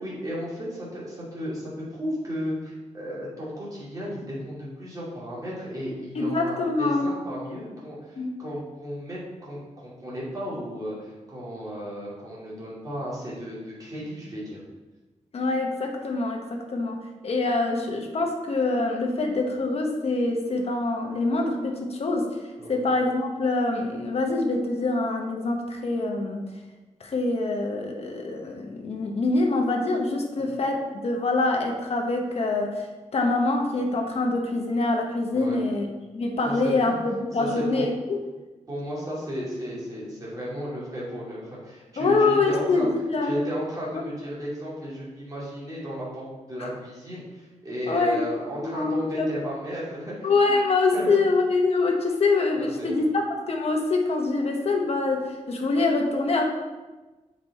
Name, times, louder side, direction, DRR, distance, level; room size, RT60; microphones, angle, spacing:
voice 1, 0.0-14.6 22.6-22.8 30.4-30.5 35.3-35.6 36.4-37.0 37.4-37.9 38.7-42.9 43.2-50.3 50.9-51.2 52.5-53.1, equal, 30° right, -7 dB, 2.6 m, -34 dB
voice 2, 6.1-7.1 7.5-7.6 8.2-8.3 15.3-17.0 17.2-22.3 22.7-26.4 27.0-32.8 33.1-35.8 36.1-38.2 42.0-43.3 46.6-46.7 47.9-48.2 48.6-49.3 50.2-56.4, left 3 dB, 55° left, 2 dB, 1.1 m, -25 dB
7.3 x 5.2 x 4.2 m, 1.2 s
wide cardioid pair, 170°, 13 cm